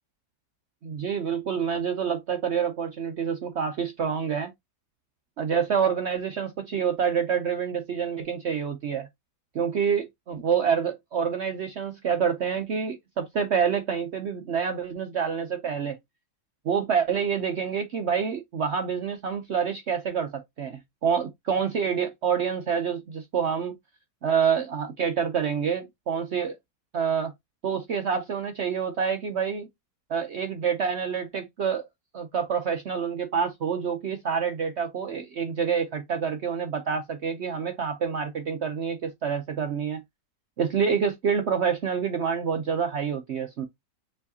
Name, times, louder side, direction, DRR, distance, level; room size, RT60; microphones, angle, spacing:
voice 1, 0.8-4.5 5.4-9.1 9.5-16.0 16.6-23.7 24.2-26.6 26.9-27.3 27.6-29.7 30.1-31.8 32.1-40.0 40.6-43.7, right 7 dB, 75° right, 0.6 m, -27 dB
4.6 x 3.3 x 2.7 m
omnidirectional pair, 1.9 m